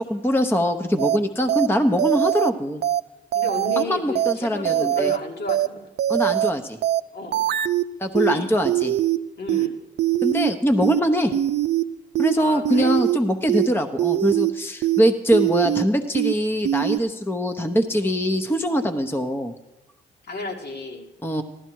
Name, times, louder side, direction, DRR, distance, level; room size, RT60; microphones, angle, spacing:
voice 1, 0.0-2.8 3.8-5.1 6.1-6.8 8.0-8.9 10.2-11.3 12.2-19.5 21.2-21.4, equal, 10° left, 6 dB, 0.9 m, -22 dB
sound 1, 1.0-1.2 1.5-1.7 2.0-2.5 2.8-3.0 3.3-3.8 4.2-4.3 4.7-5.2 5.5-5.7 6.0-6.5 6.8-7.0 7.3-7.8 8.2-8.3 8.7-9.2 9.5-9.7 10.0-10.5 10.8-11.0 11.3-11.8 12.2-12.3 12.7-13.2 13.5-13.7 14.0-14.5 14.8-15.0 15.3-15.8 16.2-16.3 16.7-17.0, right 13 dB, 65° right, 0.5 m, -22 dB
voice 2, 3.3-5.9 7.1-7.5 8.2-8.5 9.4-9.8 12.4-12.9 20.2-21.1, left 2 dB, 65° left, 1 dB, 2.3 m, -32 dB
14.5 x 12.5 x 4.7 m, 0.97 s
supercardioid pair, 65°, 19 cm